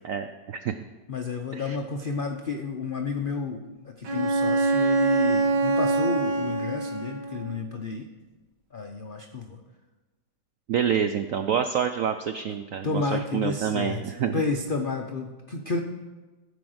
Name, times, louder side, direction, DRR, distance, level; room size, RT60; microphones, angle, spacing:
voice 1, 0.0-0.7 1.5-1.8 10.7-14.3, right 8 dB, 85° right, 8 dB, 0.7 m, -27 dB
voice 2, 1.1-8.1 8.7-9.6 12.8-15.8, left 4 dB, 85° left, 3 dB, 0.4 m, -31 dB
Bowed string instrument, 4.0-7.6, right 3 dB, 65° right, 2.1 m, -24 dB
14.5 x 5.2 x 7.8 m, 1.2 s
omnidirectional pair, 2.0 m